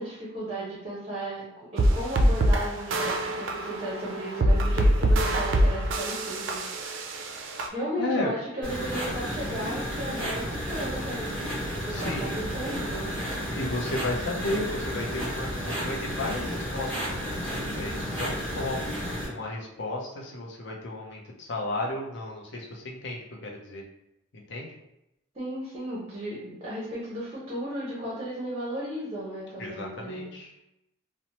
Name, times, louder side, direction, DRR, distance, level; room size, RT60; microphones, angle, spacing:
voice 1, 0.0-7.2 7.7-13.4 25.3-30.3, right 1 dB, 30° right, -7 dB, 0.7 m, -35 dB
sound 1, 1.8-7.7, right 1 dB, 65° right, 0.4 m, -24 dB
voice 2, 8.0-8.3 11.9-12.5 13.5-18.8 19.3-23.8 24.3-24.7 29.6-30.5, left 2 dB, 60° left, -2 dB, 0.6 m, -33 dB
sound 2, 8.6-19.3, equal, 5° left, 1.0 m, -32 dB
3.0 x 2.0 x 2.8 m, 0.88 s
head